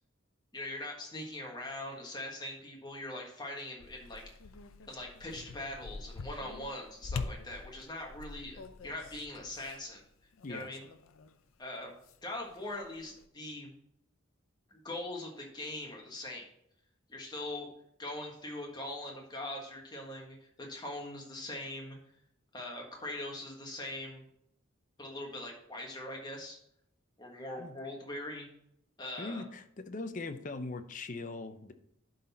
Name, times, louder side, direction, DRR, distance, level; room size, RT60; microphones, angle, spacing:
voice 1, 0.5-4.2 4.9-10.0 10.5-10.8 11.6-11.9 12.2-13.7 14.7-16.5 17.1-17.7 18.0-22.0 22.5-24.2 25.0-26.6 27.2-28.5 29.0-29.4, left 1 dB, 20° left, 0 dB, 1.5 m, -41 dB
sound 1, 3.8-11.4 11.7-13.3, left 4 dB, 90° left, 0.5 m, -45 dB
voice 2, 29.2-31.7, left 3 dB, 40° left, 9 dB, 0.6 m, -40 dB
11.5 x 4.1 x 4.2 m, 0.74 s
head